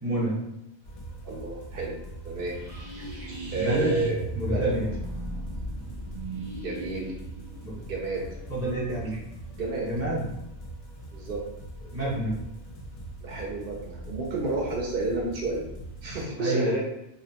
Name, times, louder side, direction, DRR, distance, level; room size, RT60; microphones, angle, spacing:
voice 1, 0.0-0.4 3.5-4.0 4.4-4.9 7.6-7.8 8.5-9.1 9.8-10.2 11.9-12.3 16.4-16.8, right 1 dB, 15° right, -8 dB, 0.8 m, -28 dB
sound 1, 0.8-16.3, right 2 dB, 40° left, 0.5 m, -42 dB
voice 2, 1.2-1.9 2.2-2.6 3.5-4.2 4.5-4.8 6.6-7.1 7.9-8.3 9.6-9.9 11.1-11.4 13.2-15.7 16.0-16.8, right 3 dB, 65° right, -3 dB, 0.7 m, -30 dB
sound 2, 2.4-9.2, right 1 dB, 30° right, 0.4 m, -37 dB
2.6 x 2.1 x 2.8 m, 0.85 s
omnidirectional pair, 1.1 m